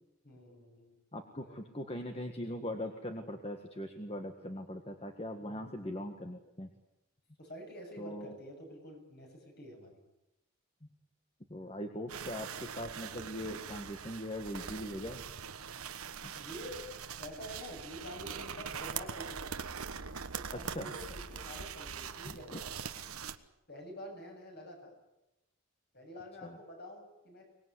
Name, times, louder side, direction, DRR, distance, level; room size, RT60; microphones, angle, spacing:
voice 1, 0.2-1.0 1.4-1.6 5.4-5.8 7.4-10.0 16.4-16.9 17.2-19.6 20.3-22.9 23.7-24.9 25.9-27.5, equal, 45° left, 3 dB, 7.9 m, -48 dB
voice 2, 1.1-6.7 8.0-8.3 11.5-15.2 16.2-16.3 20.5-20.9 22.2-22.6 26.4-26.6, left 1 dB, 25° left, 5 dB, 1.8 m, -41 dB
sound 1, 12.1-23.4, right 6 dB, 80° right, 1.4 m, -42 dB
25.0 x 20.0 x 9.8 m, 0.92 s
head